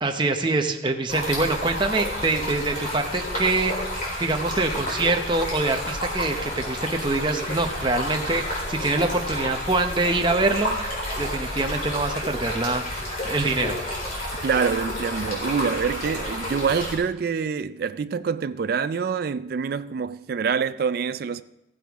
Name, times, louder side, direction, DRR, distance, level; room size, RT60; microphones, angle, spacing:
voice 1, 0.0-10.8 11.2-13.8, right 2 dB, 25° right, 0.8 m, -25 dB
Stream, 1.1-17.0, left 1 dB, 45° left, 4.0 m, -30 dB
voice 2, 14.4-21.4, right 6 dB, 55° right, 0.3 m, -26 dB
15.5 x 10.0 x 3.5 m
head